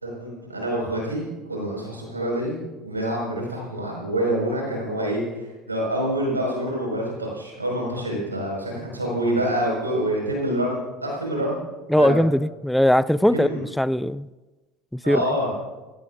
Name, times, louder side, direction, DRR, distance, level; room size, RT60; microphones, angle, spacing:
voice 1, 0.0-2.6 2.8-5.2 5.7-11.6 12.0-12.2 13.3-13.6 15.0-15.5, right 1 dB, 90° right, -1 dB, 5.2 m, -26 dB
voice 2, 11.9-14.3 14.9-15.4, left 1 dB, 5° left, 18 dB, 0.4 m, -20 dB
22.5 x 17.0 x 2.6 m, 1.2 s
figure-of-eight pair, 65°, 0 cm